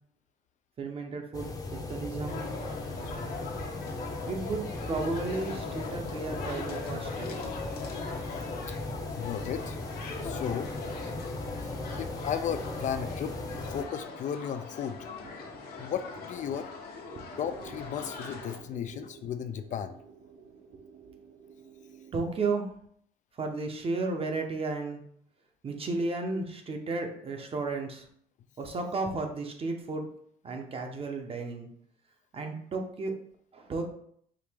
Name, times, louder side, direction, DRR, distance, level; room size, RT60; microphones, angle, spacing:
voice 1, 0.8-2.5 4.2-7.3 15.4-15.8 17.1-17.2 17.7-17.8 18.9-19.0 22.1-22.7 23.3-25.0 25.6-28.1 28.6-30.1 30.4-31.7 32.3-33.1 33.5-33.8, right 3 dB, 35° right, 4 dB, 0.8 m, -34 dB
sound 1, 1.3-13.8, left 2 dB, 20° left, 0.7 m, -37 dB
sound 2, 2.3-18.6, left 4 dB, 65° left, 0.9 m, -42 dB
voice 2, 9.2-9.8 10.2-10.7 11.6-11.7 12.0-13.4 13.7-15.0 15.8-16.7 17.4-19.9, left 8 dB, 45° left, 9 dB, 0.4 m, -34 dB
sound 3, 17.3-22.3, right 5 dB, 65° right, 0.7 m, -51 dB
4.8 x 2.8 x 3.5 m, 0.64 s
cardioid pair, 110°, 17 cm